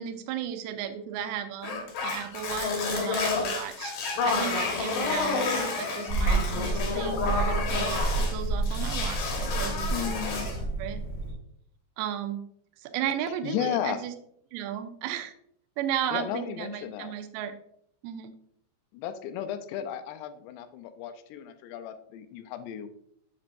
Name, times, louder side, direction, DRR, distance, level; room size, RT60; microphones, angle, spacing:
voice 1, 0.0-3.9 4.2-11.0 12.0-12.4 12.8-14.1 14.5-15.3 15.8-17.5 18.0-18.3, right 10 dB, 80° right, 7 dB, 2.3 m, -35 dB
sound 1, 1.6-8.4 8.6-10.6, left 4 dB, 60° left, 2.6 m, -30 dB
sound 2, 6.1-11.3, right 3 dB, 40° left, 1.3 m, -29 dB
voice 2, 9.9-10.5 13.4-14.0 16.1-17.1 18.9-22.9, left 10 dB, 85° left, 8 dB, 2.7 m, -34 dB
7.5 x 6.9 x 2.6 m, 0.69 s
omnidirectional pair, 5.0 m